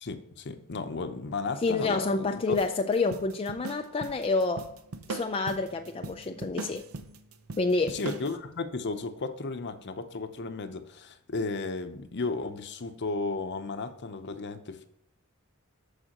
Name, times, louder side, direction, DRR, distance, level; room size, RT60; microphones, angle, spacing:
voice 1, 0.0-2.6 7.9-14.9, left 3 dB, 50° left, 0.8 m, -34 dB
voice 2, 1.6-4.7 5.1-6.8 7.6-8.0, left 3 dB, 25° left, 0.4 m, -28 dB
sound 1, 2.5-8.4, right 2 dB, 70° right, 0.7 m, -40 dB
13.0 x 4.9 x 3.0 m
head